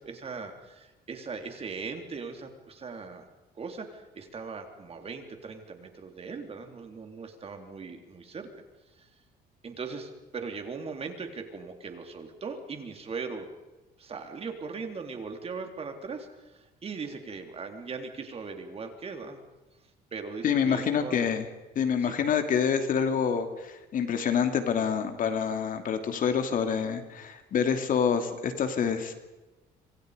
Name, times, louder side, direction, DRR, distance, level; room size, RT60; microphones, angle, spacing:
voice 1, 0.0-3.3 3.6-8.5 9.0-9.1 9.6-13.5 14.0-19.4 20.1-21.2 22.0-22.1, right 4 dB, 35° right, 5 dB, 3.8 m, -39 dB
voice 2, 20.4-21.4 21.8-29.1, left 7 dB, 55° left, 7 dB, 2.7 m, -27 dB
26.5 x 25.5 x 5.2 m, 1.1 s
cardioid pair, 110°, 17 cm